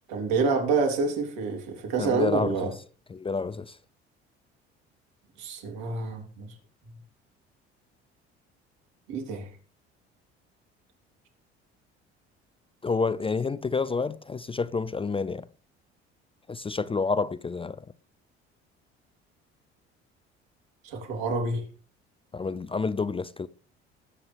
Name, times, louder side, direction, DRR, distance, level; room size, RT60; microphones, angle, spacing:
voice 1, 0.1-2.7 5.4-6.5 9.1-9.5 20.8-21.6, right 4 dB, 65° right, 3.8 m, -27 dB
voice 2, 2.0-2.7 3.1-3.8 12.8-15.5 16.5-17.8 22.3-23.5, left 4 dB, 15° left, 0.6 m, -29 dB
19.0 x 8.8 x 3.5 m
figure-of-eight pair, 55°, 32 cm